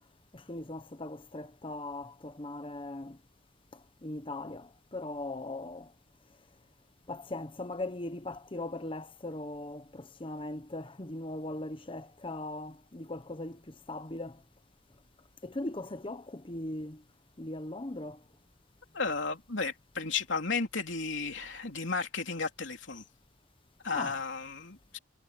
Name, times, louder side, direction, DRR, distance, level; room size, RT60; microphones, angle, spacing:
voice 1, 0.3-3.2 3.7-5.9 7.1-14.4 15.4-17.0 17.4-18.2 23.9-24.2, left 2 dB, 25° left, 1.0 m, -39 dB
voice 2, 18.9-23.0 23.8-25.0, left 4 dB, 70° left, 3.3 m, -34 dB
head